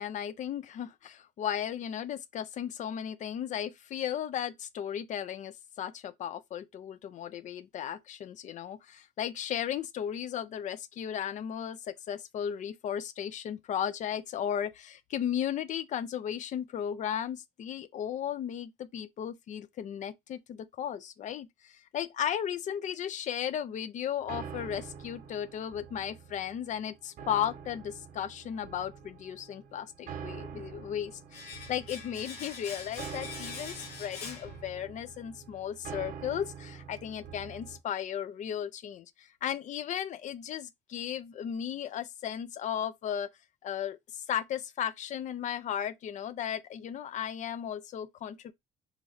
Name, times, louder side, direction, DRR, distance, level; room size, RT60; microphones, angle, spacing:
voice 1, 0.0-43.3 43.6-48.5, left 9 dB, 45° left, 0.4 m, -35 dB
sound 1, 24.2-37.8, right 7 dB, 55° right, 0.6 m, -46 dB
Domestic sounds home sounds, 31.3-35.1 35.4-35.5, left 5 dB, 70° left, 0.9 m, -44 dB
3.2 x 2.4 x 2.4 m
cardioid pair, 110°, 17 cm